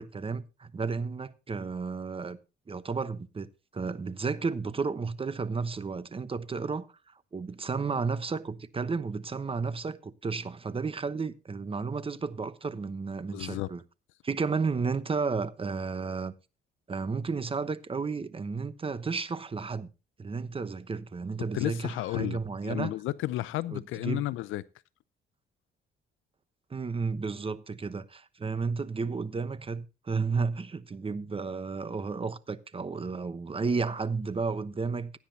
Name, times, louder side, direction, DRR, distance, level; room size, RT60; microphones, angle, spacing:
voice 1, 0.0-2.4 2.7-3.5 3.7-13.8 14.2-16.3 16.9-19.9 20.2-22.9 23.7-24.2 26.7-35.2, right 4 dB, 30° right, 1.0 m, -32 dB
voice 2, 13.3-13.7 21.5-24.6, left 16 dB, 90° left, 0.6 m, -32 dB
16.5 x 9.8 x 2.8 m
cardioid pair, 90°, 20 cm